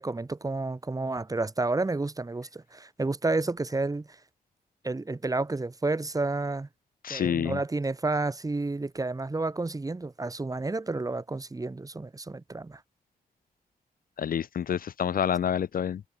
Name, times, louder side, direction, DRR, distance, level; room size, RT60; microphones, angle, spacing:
voice 1, 0.0-4.1 4.8-6.7 7.1-12.8, right 3 dB, 20° right, 3.3 m, -30 dB
voice 2, 7.0-7.6 14.2-16.0, left 8 dB, 65° left, 0.6 m, -28 dB
wide cardioid pair, 150°, 16 cm